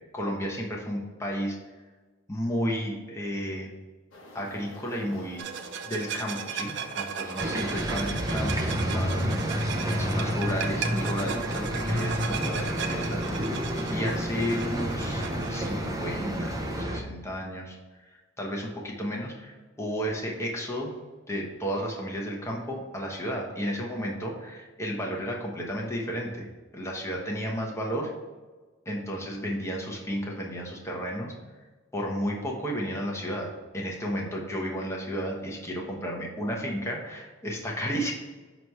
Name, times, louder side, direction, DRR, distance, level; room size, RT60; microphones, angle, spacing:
voice 1, 0.1-1.6 2.3-3.7 4.3-5.4 5.9-9.3 9.9-13.2 13.9-15.2 15.5-17.8 18.0-20.9 21.3-26.5 26.7-28.1 28.8-31.3 31.9-33.5 33.7-38.1, equal, 15° left, -2 dB, 1.0 m, -32 dB
sound 1, 4.1-16.8, equal, 70° left, 1.1 m, -46 dB
sound 2, 5.4-15.7, right 7 dB, 65° right, 0.5 m, -36 dB
sound 3, 7.4-17.0, equal, 15° right, 0.6 m, -29 dB
5.9 x 3.1 x 5.4 m, 1.3 s
head